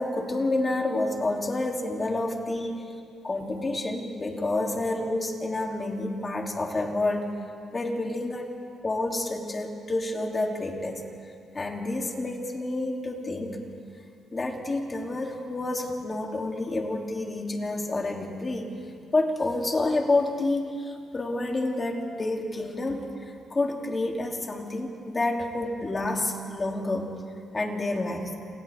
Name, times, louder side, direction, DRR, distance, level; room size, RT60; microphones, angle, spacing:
voice 1, 0.0-2.8 3.2-7.4 7.7-8.5 8.8-13.6 14.3-18.7 19.1-27.1 27.5-28.3, left 2 dB, 30° left, 1 dB, 3.1 m, -29 dB
29.0 x 27.5 x 3.7 m, 2.4 s
cardioid pair, 90°, 0 cm